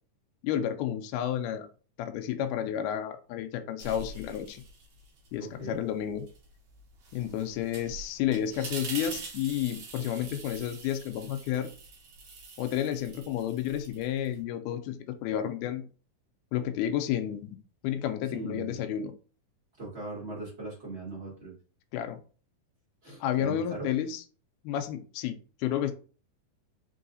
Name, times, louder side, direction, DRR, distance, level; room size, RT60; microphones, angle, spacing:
voice 1, 0.4-1.7 2.0-4.6 5.3-6.3 7.1-11.7 12.6-15.9 16.5-17.6 17.8-19.1 21.9-22.2 23.2-24.2 24.6-25.9, left 10 dB, 80° left, 6 dB, 2.0 m, -31 dB
sound 1, 3.8-5.3 5.7-14.4, right 4 dB, 75° right, 1.2 m, -44 dB
voice 2, 5.4-5.8 18.3-18.8 19.8-21.5 23.0-23.9, right 3 dB, 40° right, -6 dB, 0.8 m, -39 dB
4.7 x 3.4 x 2.6 m, 0.37 s
omnidirectional pair, 3.8 m